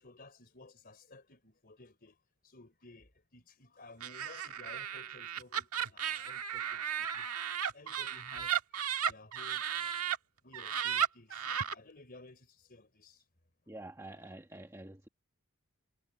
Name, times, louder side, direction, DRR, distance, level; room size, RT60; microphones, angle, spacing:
voice 1, 0.0-2.2 2.4-7.3 7.7-10.0 10.4-11.5 11.7-13.2, left 2 dB, 40° left, 4.1 m, -56 dB
Laughter, 4.0-10.2 10.5-11.7, right 8 dB, 90° right, 1.6 m, -35 dB
voice 2, 13.7-15.1, right 1 dB, 15° right, 1.2 m, -47 dB
head